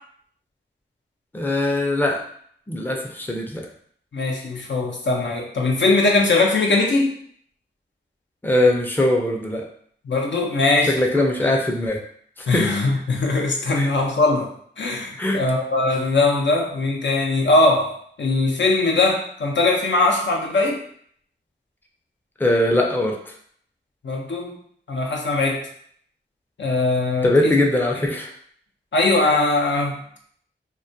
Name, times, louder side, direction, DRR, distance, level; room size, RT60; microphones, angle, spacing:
voice 1, 1.3-2.2 2.7-3.7 8.4-9.6 10.8-12.0 12.5-12.7 13.7-13.9 15.2-15.4 22.4-23.2 27.2-28.3, left 1 dB, 10° left, 1 dB, 0.4 m, -21 dB
voice 2, 4.1-7.1 10.1-11.5 12.5-14.5 14.8-17.9 18.2-20.8 24.0-24.6 24.9-25.6 26.6-27.5 28.9-30.0, left 2 dB, 70° left, 0 dB, 0.5 m, -20 dB
2.2 x 2.1 x 2.6 m, 0.62 s
cardioid pair, 45°, 20 cm